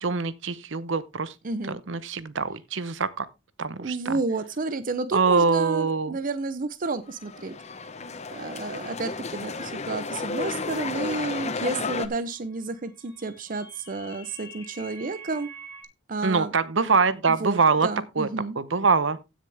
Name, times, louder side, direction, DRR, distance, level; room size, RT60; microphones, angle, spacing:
voice 1, 0.0-1.3 1.9-3.3 3.6-4.2 5.1-6.2 16.2-17.9 18.2-18.3 18.6-19.2, right 4 dB, 65° right, 0.9 m, -24 dB
voice 2, 1.4-1.8 3.8-7.6 8.3-15.5 16.1-16.5 17.3-18.6, right 3 dB, 45° right, 0.6 m, -31 dB
sound 1, 7.1-12.1, left 4 dB, 35° left, 0.8 m, -32 dB
sound 2, 12.7-15.8, right 2 dB, 15° left, 5.0 m, -45 dB
15.5 x 6.7 x 3.4 m
head